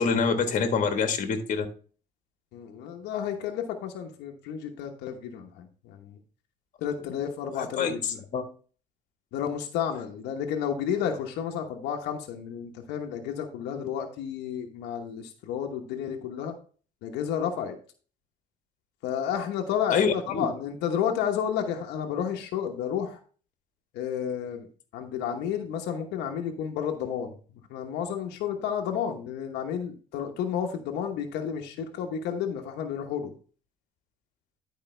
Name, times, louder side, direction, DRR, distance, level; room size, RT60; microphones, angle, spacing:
voice 1, 0.0-1.7 7.5-8.4 19.9-20.5, left 5 dB, 50° left, 7 dB, 1.5 m, -26 dB
voice 2, 2.5-6.2 6.8-8.2 9.3-16.5 17.0-17.7 19.0-23.2 23.9-24.7 24.9-27.3 27.7-33.3, left 8 dB, 90° left, 3 dB, 1.1 m, -31 dB
11.5 x 4.9 x 3.3 m, 0.40 s
cardioid pair, 110°, 17 cm